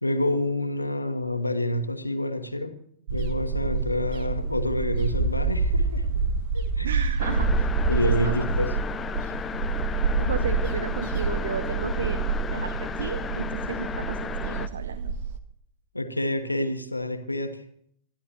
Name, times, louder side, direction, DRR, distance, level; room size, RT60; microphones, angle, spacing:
voice 1, 0.0-2.8 3.1-6.2 6.5-7.0 7.9-8.8 15.9-17.6, left 1 dB, 85° left, 9 dB, 1.2 m, -28 dB
sound 1, 3.1-15.4, right 4 dB, 50° right, 1.2 m, -27 dB
voice 2, 6.8-8.4 10.2-12.2 12.5-15.1, right 7 dB, 65° right, 15 dB, 0.6 m, -34 dB
sound 2, 7.2-14.7, left 6 dB, 20° left, 0.7 m, -34 dB
23.5 x 13.0 x 3.0 m, 0.65 s
figure-of-eight pair, 90°, 0 cm